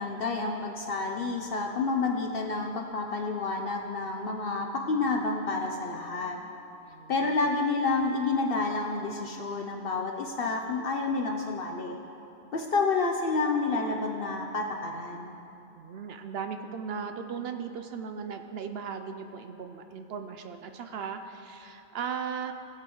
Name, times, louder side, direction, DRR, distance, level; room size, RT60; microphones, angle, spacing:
voice 1, 0.0-6.4 7.1-12.0 12.5-15.4, left 3 dB, 60° left, 2 dB, 0.8 m, -29 dB
voice 2, 6.9-7.4 15.7-22.5, right 6 dB, 65° right, 7 dB, 0.7 m, -37 dB
18.5 x 7.7 x 3.1 m, 2.9 s
omnidirectional pair, 1.2 m